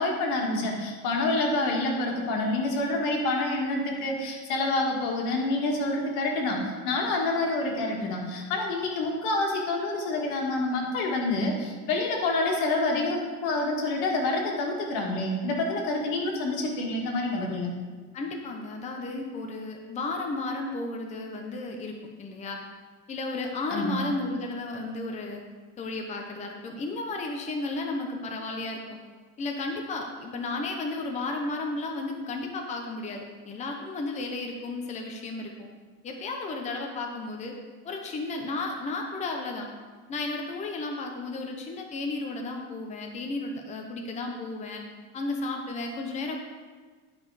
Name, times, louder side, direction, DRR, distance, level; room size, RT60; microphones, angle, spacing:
voice 1, 0.0-6.6 6.8-17.7 23.7-24.0, left 2 dB, 85° left, 0 dB, 2.0 m, -27 dB
voice 2, 18.1-22.6 23.1-25.4 25.8-29.0 29.4-35.7 36.0-37.5 37.8-39.7 40.1-44.8 45.1-46.4, left 2 dB, 25° left, 2 dB, 0.8 m, -33 dB
11.0 x 5.4 x 4.9 m, 1.5 s
cardioid pair, 165°, 29 cm